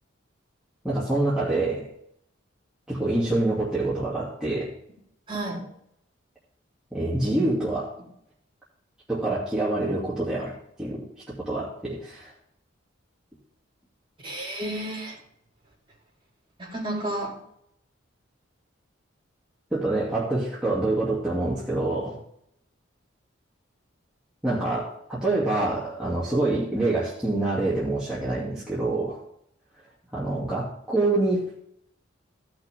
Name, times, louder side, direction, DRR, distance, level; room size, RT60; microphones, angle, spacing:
voice 1, 0.8-1.8 2.9-4.7 6.9-7.9 9.1-10.5 10.8-12.3 19.7-22.2 24.4-29.2 30.1-31.6, right 2 dB, 5° right, -9 dB, 2.6 m, -26 dB
voice 2, 5.3-5.6 14.2-15.2 16.6-17.4, right 1 dB, 25° right, -4 dB, 4.3 m, -31 dB
16.5 x 6.1 x 3.6 m, 0.71 s
head